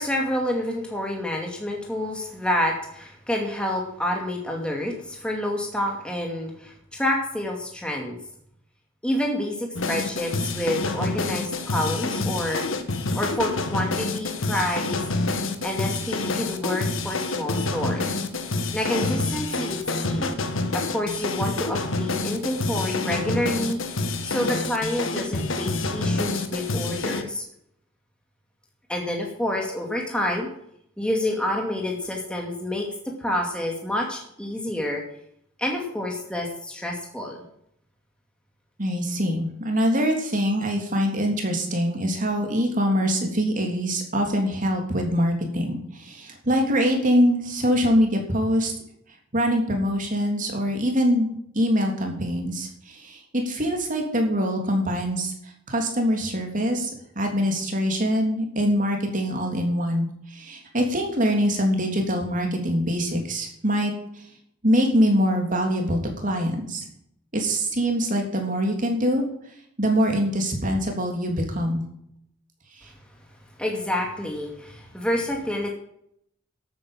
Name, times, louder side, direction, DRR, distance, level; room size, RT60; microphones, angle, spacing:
voice 1, 0.0-8.2 9.0-12.7 13.2-15.0 15.6-18.1 18.7-20.4 20.7-27.4 28.9-30.5 31.0-32.9 33.2-35.0 35.6-37.4 73.6-75.7, left 1 dB, 5° left, 0 dB, 2.3 m, -28 dB
sound 1, 9.8-27.2, left 3 dB, 80° left, 1.6 m, -27 dB
voice 2, 38.8-48.7 49.3-56.9 57.1-64.2 64.6-66.8 67.3-69.2 69.8-71.8 72.8-72.9, equal, 40° right, 3 dB, 3.3 m, -24 dB
12.5 x 9.0 x 7.4 m, 0.72 s
head